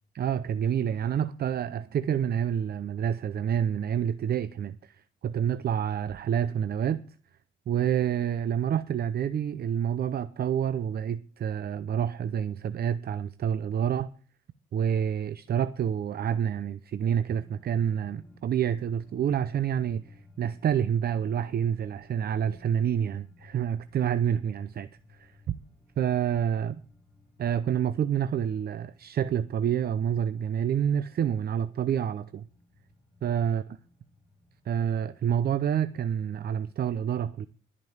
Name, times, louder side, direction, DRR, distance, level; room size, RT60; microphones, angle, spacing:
voice 1, 0.1-5.0 5.2-7.0 7.7-14.1 14.7-25.5 26.0-26.8 27.4-32.5 33.2-33.6 34.7-37.5, right 9 dB, 50° right, 0.6 m, -28 dB
sound 1, 17.3-36.8, left 2 dB, 5° left, 7.1 m, -59 dB
13.5 x 5.4 x 7.9 m
cardioid pair, 90°, 20 cm